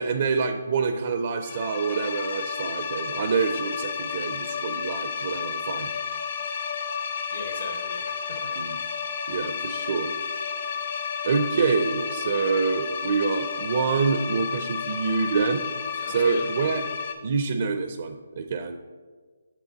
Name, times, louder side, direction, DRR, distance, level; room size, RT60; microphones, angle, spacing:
voice 1, 0.0-5.9 8.6-8.8 9.3-10.1 11.2-15.6 16.1-16.8 17.2-18.8, right 5 dB, 50° right, 7 dB, 0.6 m, -26 dB
sound 1, 1.4-17.1, left 6 dB, 55° left, 1.0 m, -32 dB
voice 2, 7.3-8.5 16.0-16.5, left 3 dB, 70° left, -2 dB, 1.8 m, -38 dB
9.2 x 6.8 x 4.0 m, 1.5 s
hypercardioid pair, 160°, 0 cm